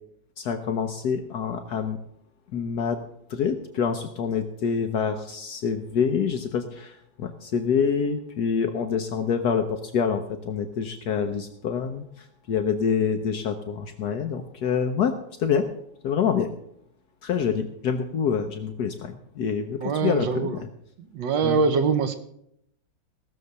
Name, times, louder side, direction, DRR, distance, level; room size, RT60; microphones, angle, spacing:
voice 1, 0.4-2.0 2.5-3.0 3.3-15.7 16.0-16.5 17.2-20.5 21.4-21.6, left 6 dB, 65° left, 6 dB, 1.3 m, -26 dB
voice 2, 19.8-20.6 21.0-22.1, right 5 dB, 85° right, 10 dB, 1.7 m, -23 dB
16.5 x 6.8 x 6.4 m, 0.73 s
omnidirectional pair, 1.9 m